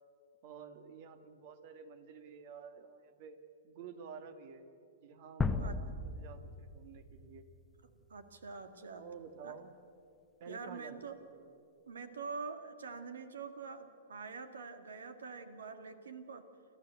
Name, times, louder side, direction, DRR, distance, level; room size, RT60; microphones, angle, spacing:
voice 1, 0.4-3.4 3.6-4.7 5.0-7.5 8.9-9.7 10.4-11.6, right 6 dB, 50° right, 10 dB, 1.9 m, -51 dB
sound 1, 5.4-8.3, left 3 dB, 10° left, 0.9 m, -37 dB
voice 2, 8.1-9.0 9.4-9.6 10.5-11.2 11.9-16.4, right 4 dB, 90° right, 9 dB, 2.1 m, -45 dB
29.0 x 12.5 x 8.3 m, 2.5 s
hypercardioid pair, 135°, 0 cm